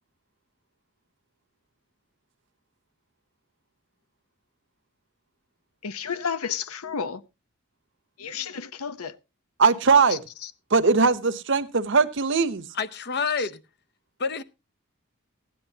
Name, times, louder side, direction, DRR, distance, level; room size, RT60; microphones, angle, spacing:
voice 1, 5.8-7.2 8.2-9.2 10.1-10.5 13.4-13.5, left 6 dB, 85° left, 0.8 m, -32 dB
voice 2, 9.6-10.2 10.7-12.7, right 4 dB, 55° right, 0.8 m, -20 dB
voice 3, 12.7-13.6 14.2-14.4, left 5 dB, 50° left, 0.7 m, -28 dB
15.5 x 10.5 x 2.8 m
head